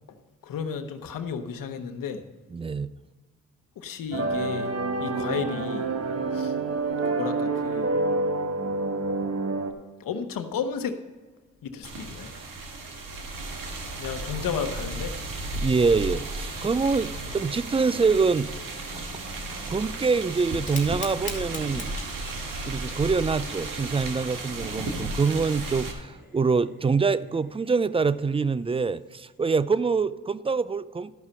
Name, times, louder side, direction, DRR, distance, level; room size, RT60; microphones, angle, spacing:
voice 1, 0.4-2.2 3.8-4.7 5.0-5.9 6.3-6.5 7.1-7.9 10.0-10.9 11.6-12.3 14.0-15.1, left 6 dB, 80° left, 8 dB, 1.0 m, -32 dB
voice 2, 2.5-2.9 15.6-18.5 19.7-21.9 22.7-31.1, right 4 dB, 20° right, 17 dB, 0.4 m, -25 dB
sound 1, 4.1-9.7, right 3 dB, 50° right, 1.2 m, -27 dB
sound 2, 11.8-25.9, right 2 dB, 75° right, 1.7 m, -34 dB
Fire, 20.5-29.4, left 2 dB, 20° left, 2.6 m, -45 dB
13.0 x 5.9 x 5.5 m, 1.4 s
cardioid pair, 70°, 33 cm